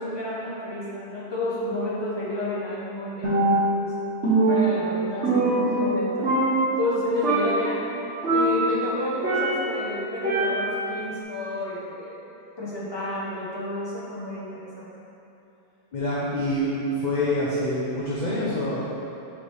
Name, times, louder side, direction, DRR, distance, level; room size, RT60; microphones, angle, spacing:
voice 1, 0.0-3.9 4.3-6.3 6.8-7.8 8.3-12.2 12.6-14.9, left 1 dB, 20° left, -8 dB, 1.1 m, -30 dB
Percussion, 3.2-3.9 4.2-6.0 6.2-6.9 7.2-7.7 8.2-9.8 10.2-10.9, right 2 dB, 60° right, 1.5 m, -23 dB
voice 2, 15.9-18.8, left 1 dB, 45° left, -7 dB, 0.7 m, -26 dB
7.4 x 4.1 x 3.4 m, 2.9 s
omnidirectional pair, 1.3 m